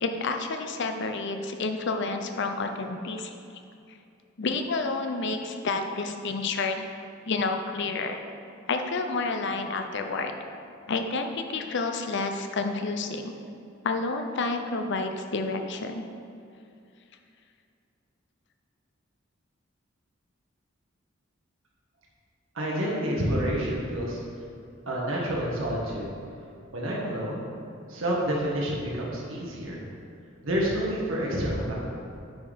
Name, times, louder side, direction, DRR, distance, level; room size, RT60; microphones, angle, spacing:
voice 1, 0.0-3.3 4.4-6.9 7.3-8.2 8.7-10.3 10.9-13.4 13.8-16.0, left 3 dB, 60° left, 5 dB, 0.7 m, -29 dB
voice 2, 22.5-24.2 24.9-26.1 26.7-27.5 27.9-29.8 30.4-31.7, equal, 75° right, -4 dB, 1.6 m, -28 dB
9.5 x 4.3 x 5.1 m, 2.5 s
head